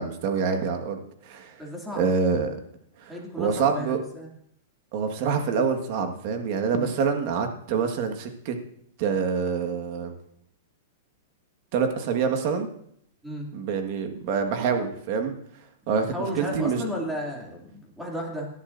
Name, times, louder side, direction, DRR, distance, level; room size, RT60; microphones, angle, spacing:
voice 1, 0.0-1.6 1.9-2.6 3.0-4.0 4.9-8.5 9.0-10.1 11.7-12.7 13.5-15.3 15.9-16.8, right 5 dB, 45° right, 5 dB, 1.6 m, -26 dB
voice 2, 1.6-2.1 3.1-4.3 6.7-6.9 13.2-13.5 16.1-18.5, equal, 5° right, -2 dB, 2.6 m, -34 dB
18.0 x 11.5 x 2.6 m, 0.68 s
supercardioid pair, 160°, 0 cm